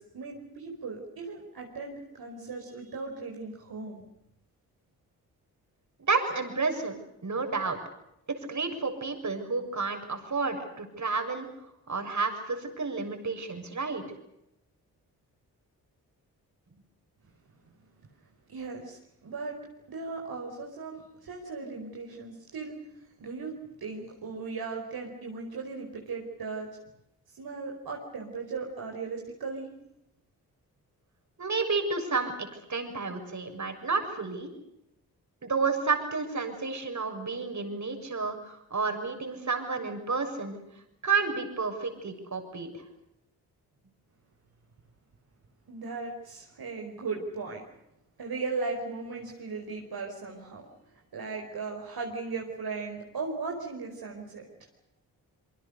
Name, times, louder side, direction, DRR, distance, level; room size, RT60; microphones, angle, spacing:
voice 1, 0.0-4.0 18.5-19.6 19.9-22.8 23.2-23.5 23.8-26.7 27.3-29.7 45.7-47.6 48.2-50.7 51.1-54.5, right 4 dB, 65° right, 0 dB, 5.1 m, -37 dB
voice 2, 6.1-6.9 7.2-7.8 8.3-11.5 11.9-14.0 31.4-34.5 35.4-40.6 41.0-42.7, right 4 dB, 45° right, 5 dB, 6.8 m, -31 dB
27.0 x 24.5 x 6.8 m, 0.82 s
hypercardioid pair, 40°, 40 cm